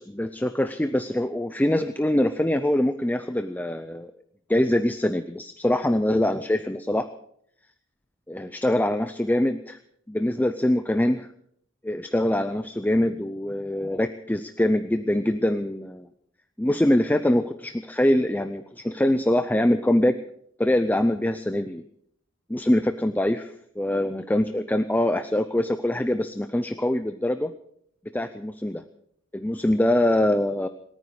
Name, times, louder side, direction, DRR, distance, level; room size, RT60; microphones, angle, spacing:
voice 1, 0.0-4.1 4.5-7.1 8.3-9.6 10.1-11.3 11.8-16.1 16.6-20.2 20.6-21.8 22.5-27.5 28.1-28.8 29.3-30.7, left 1 dB, 10° left, 9 dB, 0.5 m, -24 dB
28.5 x 9.5 x 4.9 m, 0.69 s
head